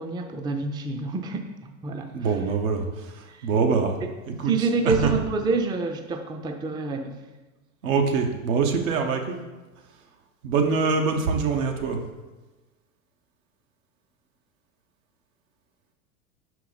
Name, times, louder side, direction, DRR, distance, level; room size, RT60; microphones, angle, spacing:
voice 1, 0.0-2.1 3.3-3.5 4.0-4.1 4.5-7.2, right 4 dB, 10° right, 5 dB, 0.4 m, -27 dB
voice 2, 2.1-4.0 4.3-5.2 7.8-9.4 10.4-12.0, right 5 dB, 75° right, 4 dB, 1.0 m, -24 dB
5.7 x 4.7 x 4.0 m, 1.2 s
hypercardioid pair, 90°, 40 cm